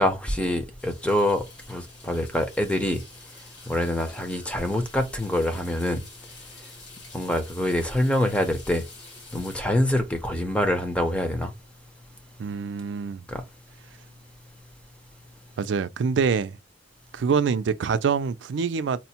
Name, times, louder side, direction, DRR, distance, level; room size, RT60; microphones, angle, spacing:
voice 1, 0.0-3.0 3.7-6.0 7.1-8.8 9.3-11.5 13.3-13.4, left 1 dB, 5° left, 0.6 m, -25 dB
sound 1, 0.8-9.6, left 3 dB, 70° left, 2.0 m, -48 dB
voice 2, 12.4-13.2 15.6-16.6 17.1-19.0, right 6 dB, 85° right, 0.4 m, -25 dB
4.2 x 2.1 x 2.8 m
head